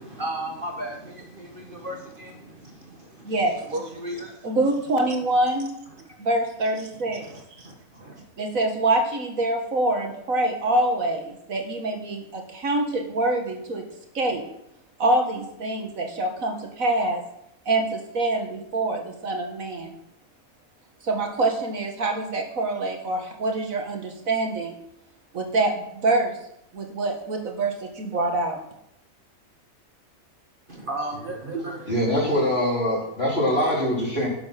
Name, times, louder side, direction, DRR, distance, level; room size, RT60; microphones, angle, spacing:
voice 1, 0.0-3.4 3.6-4.6 5.9-6.3 7.1-8.2 30.7-32.0, right 1 dB, 40° right, 1 dB, 1.7 m, -35 dB
voice 2, 3.2-3.6 4.4-5.7 6.2-7.3 7.6-7.7 8.4-13.9 14.1-14.4 15.0-17.2 17.7-20.0 21.0-24.7 25.3-26.4 26.7-28.6, right 2 dB, 75° right, 3 dB, 2.0 m, -25 dB
voice 3, 31.9-34.3, equal, 45° left, -4 dB, 4.5 m, -23 dB
12.0 x 7.1 x 5.8 m, 0.78 s
omnidirectional pair, 1.5 m